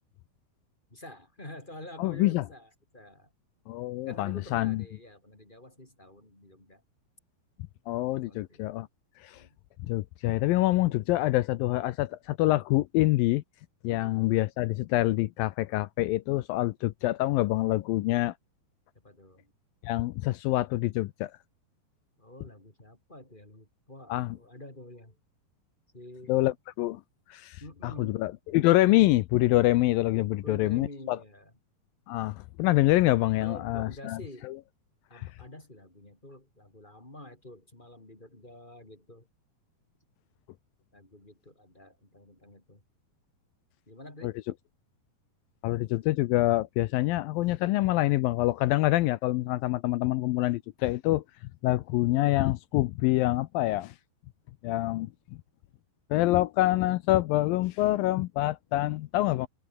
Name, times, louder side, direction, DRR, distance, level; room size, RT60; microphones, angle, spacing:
voice 1, 0.9-3.3 4.1-6.8 8.3-8.7 9.4-9.6 13.9-14.2 19.0-19.5 22.2-25.2 25.9-26.5 27.6-28.2 30.1-31.5 33.4-34.5 35.1-39.3 40.9-42.8 43.9-44.4, left 1 dB, 15° left, 3.7 m, -48 dB
voice 2, 2.0-2.4 3.7-4.8 7.9-8.9 9.2-9.4 9.9-13.4 13.8-18.3 19.8-21.3 24.1-24.4 26.3-27.0 27.3-31.2 32.1-34.5 35.1-35.3 44.2-44.3 45.6-51.2 51.6-53.9 54.6-55.1 56.1-59.5, left 17 dB, 80° left, 2.3 m, -26 dB
omnidirectional pair, 4.5 m